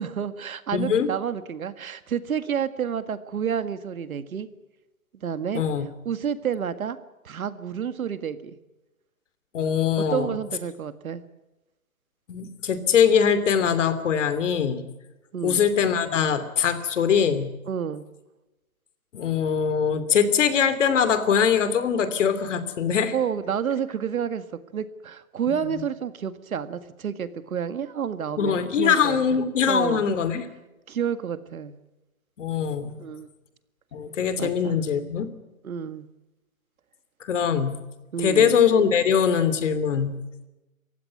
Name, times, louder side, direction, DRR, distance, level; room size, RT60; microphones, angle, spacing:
voice 1, 0.0-4.5 5.1-5.6 6.1-7.0 7.2-8.6 10.0-11.2 15.3-15.6 17.7-18.1 23.1-24.5 24.7-29.4 29.7-30.0 30.9-31.8 33.0-33.3 34.4-34.8 35.6-36.1 38.1-38.6, right 8 dB, 80° right, 12 dB, 1.9 m, -29 dB
voice 2, 0.7-1.1 5.5-5.9 9.5-10.4 12.3-14.8 15.4-17.5 19.1-23.1 25.5-25.8 28.4-30.5 32.4-32.9 33.9-35.3 37.2-37.8 38.2-40.2, left 7 dB, 60° left, 12 dB, 3.0 m, -22 dB
27.0 x 15.5 x 9.9 m, 1.0 s
hypercardioid pair, 155°, 42 cm